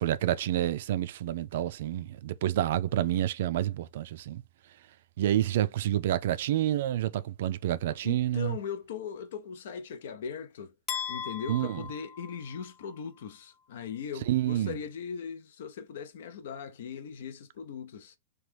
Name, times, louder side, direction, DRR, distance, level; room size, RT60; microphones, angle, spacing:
voice 1, 0.0-4.4 5.2-8.6 11.5-11.8 14.3-14.8, right 12 dB, 65° right, 0.3 m, -28 dB
voice 2, 8.0-10.8 11.1-18.2, left 7 dB, 70° left, 0.5 m, -39 dB
sound 1, 10.9-13.0, left 7 dB, 15° left, 0.5 m, -38 dB
2.9 x 2.3 x 3.2 m
supercardioid pair, 155°, 0 cm